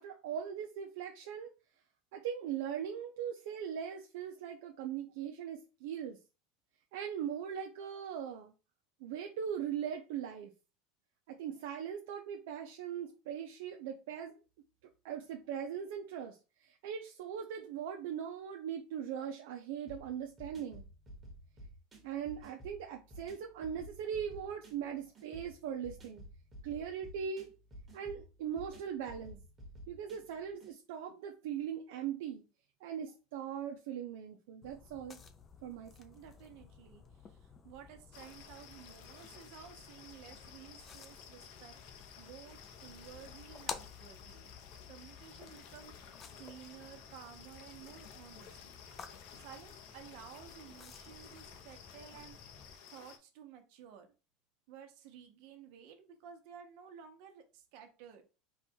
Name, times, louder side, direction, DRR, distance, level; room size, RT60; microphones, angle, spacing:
voice 1, 0.0-1.5 2.1-6.2 6.9-8.5 9.0-10.5 11.3-14.4 15.0-20.8 22.0-26.2 26.6-27.5 27.9-29.4 29.9-32.4 32.8-35.2 35.6-36.2, right 8 dB, 75° right, 0.5 m, -40 dB
sound 1, 19.9-30.7, equal, 15° right, 1.3 m, -53 dB
sound 2, 34.6-52.7, left 6 dB, 25° left, 0.4 m, -53 dB
voice 2, 36.1-41.7 42.2-44.5 44.9-48.6 49.4-54.1 54.7-58.2, right 8 dB, 60° right, 1.0 m, -54 dB
sound 3, 38.1-53.2, left 7 dB, 60° left, 0.7 m, -54 dB
4.2 x 2.4 x 4.3 m
supercardioid pair, 150°, 0 cm